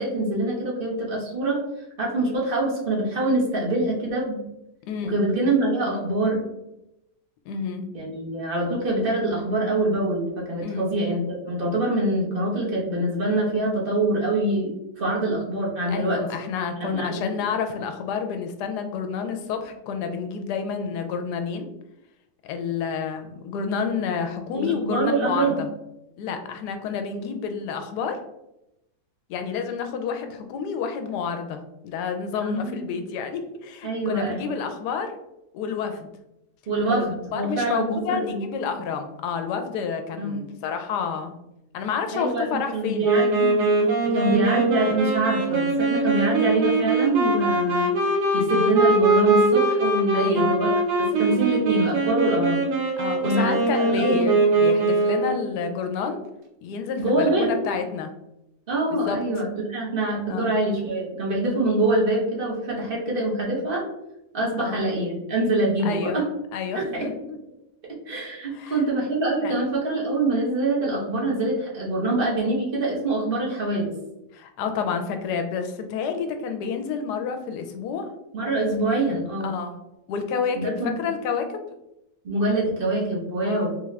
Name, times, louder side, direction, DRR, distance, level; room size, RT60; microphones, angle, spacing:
voice 1, 0.0-1.6 2.0-4.4 5.0-6.4 7.9-14.7 15.0-16.2 16.8-17.4 24.5-25.6 32.4-32.9 33.8-34.4 36.7-38.5 40.2-40.5 42.1-42.5 42.7-43.6 44.1-47.9 48.3-52.6 53.2-54.2 57.0-57.5 58.7-63.8 64.3-66.2 66.7-67.1 68.1-73.9 78.3-79.5 80.5-81.0 82.2-83.7, right 2 dB, 40° right, -4 dB, 1.1 m, -25 dB
voice 2, 4.9-5.2 7.5-7.9 10.6-10.9 15.9-21.7 22.4-25.7 26.2-28.2 29.3-35.2 35.5-36.1 36.8-37.1 37.3-41.3 41.7-43.1 44.1-44.3 50.1-50.5 53.0-56.2 56.6-58.1 58.9-59.2 60.3-60.5 64.6-64.8 65.8-66.2 66.5-67.4 68.5-68.8 69.4-69.5 74.3-78.1 79.4-79.8 80.1-81.6 83.4-83.7, left 6 dB, 80° left, 6 dB, 1.1 m, -29 dB
Wind instrument woodwind instrument, 43.0-55.5, right 2 dB, 85° right, 1.4 m, -22 dB
3.9 x 2.4 x 3.2 m, 0.87 s
omnidirectional pair, 1.7 m